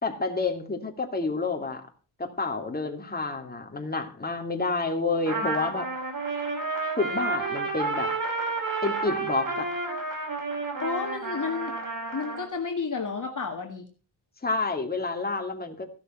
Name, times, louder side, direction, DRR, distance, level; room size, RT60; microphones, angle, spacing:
voice 1, 0.0-1.8 2.2-5.9 7.0-8.1 8.8-9.7 14.4-15.9, left 3 dB, 20° left, 3 dB, 2.6 m, -29 dB
Trumpet, 5.3-12.5, right 3 dB, 45° right, 5.2 m, -31 dB
voice 2, 10.8-11.7 12.1-13.9, left 4 dB, 40° left, 3 dB, 1.9 m, -31 dB
15.5 x 12.5 x 4.5 m, 0.36 s
wide cardioid pair, 145°, 46 cm